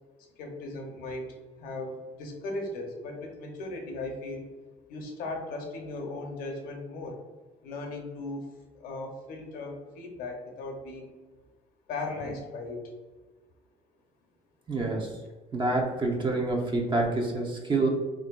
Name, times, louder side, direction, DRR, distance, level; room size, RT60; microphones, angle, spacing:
voice 1, 0.4-4.5 4.9-7.2 7.6-8.4 8.7-11.1 11.9-12.8, left 2 dB, 70° left, 2 dB, 0.7 m, -37 dB
voice 2, 14.7-15.1 15.5-17.9, right 2 dB, 30° right, 0 dB, 0.7 m, -27 dB
3.3 x 2.6 x 2.3 m, 1.3 s
supercardioid pair, 75°, 16 cm